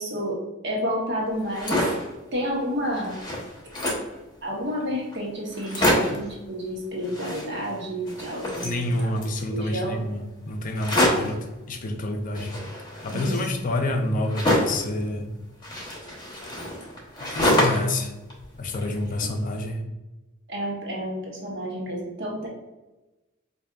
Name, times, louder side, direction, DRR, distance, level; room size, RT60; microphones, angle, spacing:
voice 1, 0.0-1.8 2.3-3.2 4.4-9.2 9.5-10.0 13.1-13.4 19.2-19.3 20.5-22.5, equal, 60° right, -2 dB, 1.1 m, -30 dB
sound 1, 1.4-2.1 2.6-2.7 2.9-4.2 4.8-4.9 5.1-5.2 5.5-6.3 7.0-7.8 8.1-9.4 10.7-11.4 12.4-14.9 15.6-18.0 18.3-19.2, left 1 dB, 20° left, 1.0 m, -26 dB
voice 2, 8.6-12.6 13.0-15.3 17.2-18.1 18.5-19.8, left 1 dB, 40° left, 4 dB, 0.5 m, -28 dB
4.8 x 2.6 x 2.4 m, 1.1 s
head